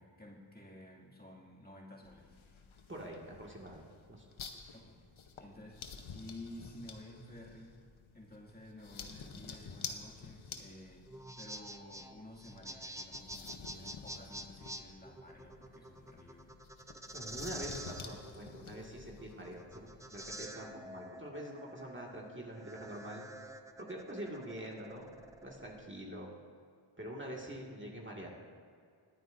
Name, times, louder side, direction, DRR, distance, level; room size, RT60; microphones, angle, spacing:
voice 1, 0.0-2.4 4.7-5.0 5.4-5.8 6.1-7.8 8.1-11.1 11.4-16.6, left 1 dB, 20° left, -4 dB, 2.1 m, -52 dB
sound 1, 2.0-20.5, left 5 dB, 80° left, 0.9 m, -51 dB
voice 2, 2.9-4.3 4.5-4.7 17.1-23.2 23.8-26.3 27.0-28.3, right 1 dB, 25° right, -2 dB, 1.8 m, -45 dB
sound 2, 11.1-25.8, right 1 dB, 5° right, 0.6 m, -48 dB
20.0 x 9.4 x 2.6 m, 2.1 s
cardioid pair, 50°, 47 cm